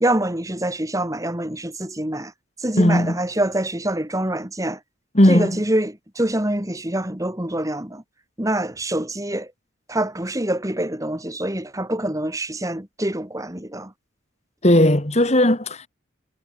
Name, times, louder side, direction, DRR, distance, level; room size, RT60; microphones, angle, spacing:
voice 1, 0.0-2.3 2.6-4.8 5.3-8.0 8.4-9.5 9.9-13.9, right 1 dB, 15° right, 1.9 m, -25 dB
voice 2, 2.8-3.2 5.1-5.6 14.6-15.9, left 1 dB, 35° left, 2.4 m, -17 dB
head